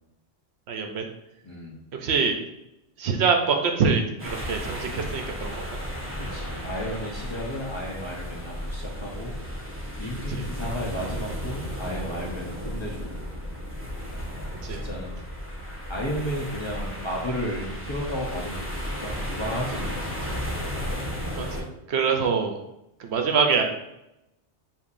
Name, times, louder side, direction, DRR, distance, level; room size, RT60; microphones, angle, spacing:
voice 1, 0.7-1.1 2.0-2.4 3.0-5.8 10.3-10.4 14.6-14.8 21.4-22.6 23.0-23.6, right 5 dB, 70° right, 3 dB, 0.8 m, -25 dB
voice 2, 1.4-1.8 6.2-9.3 10.0-13.2 14.7-15.2 15.9-18.7 19.0-20.4, equal, 30° left, -4 dB, 0.7 m, -33 dB
sound 1, 4.2-21.6, equal, 15° right, 0.7 m, -34 dB
6.9 x 2.7 x 2.5 m, 0.89 s
omnidirectional pair, 1.2 m